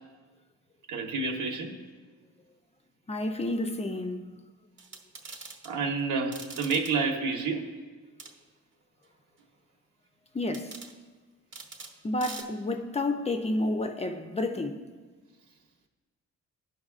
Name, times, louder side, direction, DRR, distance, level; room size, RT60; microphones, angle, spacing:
voice 1, 0.9-1.7 5.6-7.6, right 4 dB, 80° right, 1.3 m, -29 dB
voice 2, 3.1-4.3 5.3-5.5 10.3-10.8 12.0-14.9, left 2 dB, 20° left, 0.5 m, -30 dB
sound 1, 4.8-5.7 6.3-7.0 8.2-8.4 10.5-10.9 11.5-12.0 12.2-12.4, right 4 dB, 40° right, 0.9 m, -43 dB
17.5 x 5.9 x 2.4 m
cardioid pair, 125°, 30 cm